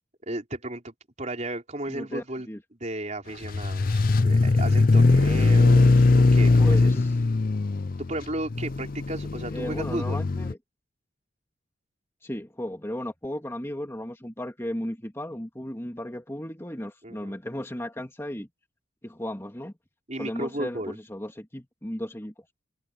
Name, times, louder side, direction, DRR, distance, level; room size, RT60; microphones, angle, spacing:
voice 1, 0.3-7.0 8.0-10.2 17.0-17.4 20.1-21.0, right 1 dB, 35° right, 4.5 m, -34 dB
voice 2, 1.9-2.6 6.6-7.1 9.5-10.6 12.2-18.5 19.0-19.7 20.2-22.3, left 1 dB, 15° left, 2.2 m, -35 dB
sound 1, 3.4-10.5, left 3 dB, 45° left, 0.5 m, -20 dB
head